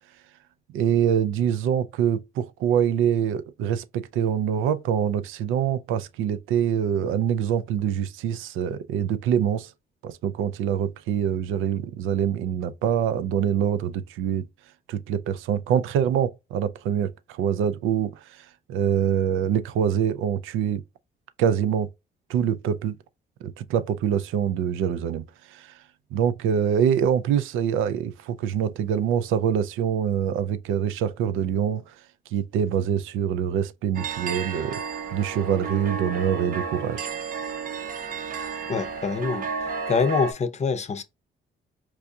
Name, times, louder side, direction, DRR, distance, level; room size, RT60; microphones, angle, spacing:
voice 1, 0.7-9.7 10.0-14.5 14.9-20.8 21.4-21.9 22.3-22.9 23.4-25.8 26.1-32.0 32.3-34.8 35.1-37.1, right 8 dB, 90° right, 0.4 m, -25 dB
sound 1, 33.9-40.3, right 6 dB, 45° right, 0.6 m, -32 dB
voice 2, 38.7-41.0, left 5 dB, 35° left, 0.6 m, -26 dB
4.6 x 2.6 x 2.3 m
cardioid pair, 90°, 20 cm